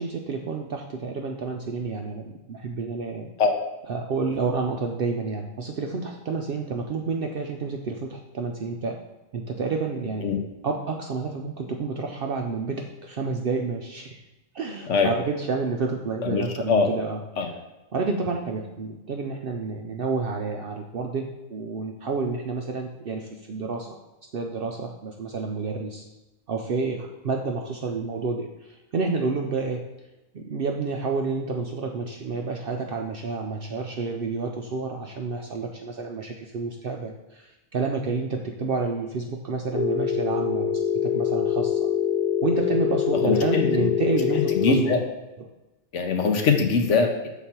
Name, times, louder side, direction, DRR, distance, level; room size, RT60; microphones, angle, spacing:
voice 1, 0.0-3.3 3.9-9.0 9.3-10.3 10.6-14.2 14.5-17.2 17.9-24.0 24.3-26.0 26.5-29.8 30.3-40.7 41.0-41.9 42.4-45.0, right 4 dB, 60° right, 2 dB, 0.6 m, -29 dB
voice 2, 16.2-16.9 17.4-17.5 43.2-43.9 44.5-45.0 45.9-47.3, left 4 dB, 65° left, 4 dB, 1.1 m, -22 dB
Telephone, 39.7-44.7, left 9 dB, 35° left, 0.7 m, -24 dB
7.1 x 4.0 x 4.4 m, 1.0 s
omnidirectional pair, 1.4 m